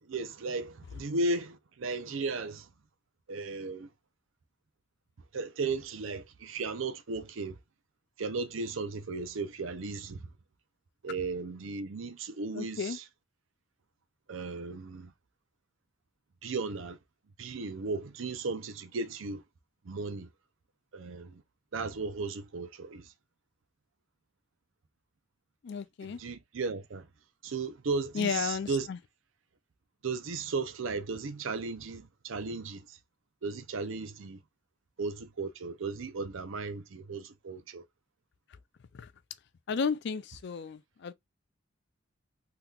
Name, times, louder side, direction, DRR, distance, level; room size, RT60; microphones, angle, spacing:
voice 1, 0.0-2.7 3.3-3.9 5.3-7.6 8.2-10.3 11.0-13.1 14.3-15.1 16.4-17.0 17.4-19.4 19.8-20.3 20.9-21.4 21.7-23.1 26.0-27.1 27.4-28.9 30.0-33.0 33.4-34.4 35.0-37.8, right 3 dB, 70° right, 0.6 m, -35 dB
voice 2, 12.5-13.0 25.6-26.2 28.2-29.0 38.9-39.1 39.7-41.1, left 6 dB, 55° left, 0.4 m, -33 dB
3.5 x 2.9 x 2.3 m
head